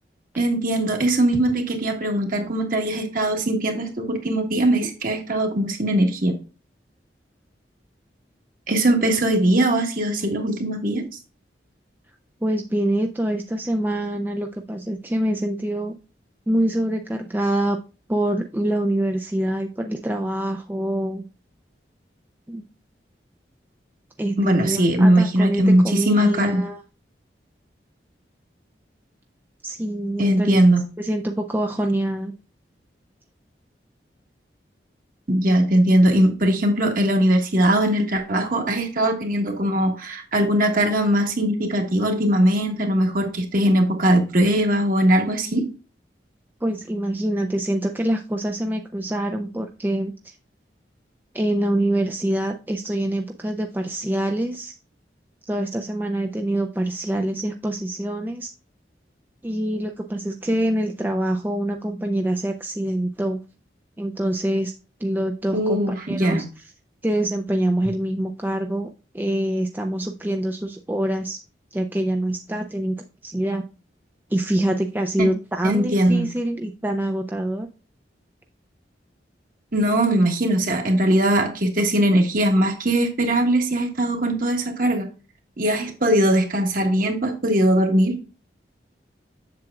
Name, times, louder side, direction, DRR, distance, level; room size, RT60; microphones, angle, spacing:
voice 1, 0.4-6.3 8.7-11.0 24.4-26.6 30.2-30.8 35.3-45.7 65.5-66.4 75.2-75.3 75.6-76.3 79.7-85.1 85.6-88.2, right 1 dB, 50° right, 3 dB, 1.5 m, -20 dB
voice 2, 12.4-15.9 16.5-17.8 18.1-21.2 22.5-22.6 24.2-26.8 29.6-30.6 31.0-32.3 46.6-50.1 51.3-54.8 55.5-58.5 59.4-63.4 64.0-64.7 65.0-66.6 67.0-68.9 69.1-71.4 71.7-73.0 73.2-73.6 74.3-77.7, right 1 dB, 10° right, 4 dB, 0.4 m, -25 dB
7.5 x 7.3 x 2.4 m, 0.33 s
head